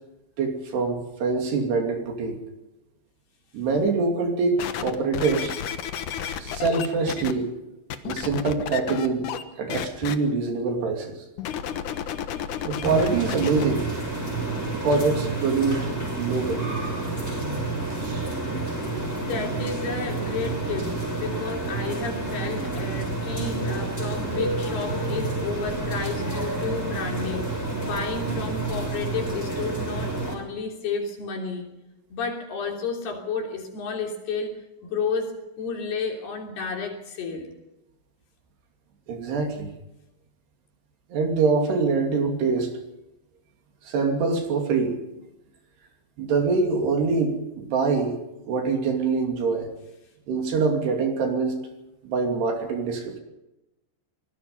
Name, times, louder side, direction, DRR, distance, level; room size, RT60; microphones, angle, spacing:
voice 1, 0.4-2.4 3.5-5.6 6.4-7.6 8.0-9.3 9.6-11.2 12.6-13.9 14.7-15.9 16.2-16.7 17.9-18.3 39.1-39.7 41.1-42.7 43.8-45.0 46.2-48.2 48.5-49.7 50.3-51.6 52.0-53.2, right 4 dB, 60° right, 3 dB, 4.6 m, -24 dB
sound 1, 4.6-7.3 7.9-9.4 9.7-10.1 11.4-13.6 14.3-14.4, left 9 dB, 75° left, 1.8 m, -32 dB
sound 2, 12.8-30.4, right 2 dB, 5° left, 6.0 m, -29 dB
voice 2, 19.2-27.5 27.8-31.7 32.1-34.5 34.8-37.6, left 5 dB, 60° left, 2 dB, 5.1 m, -31 dB
25.0 x 18.5 x 5.6 m, 0.95 s
omnidirectional pair, 5.5 m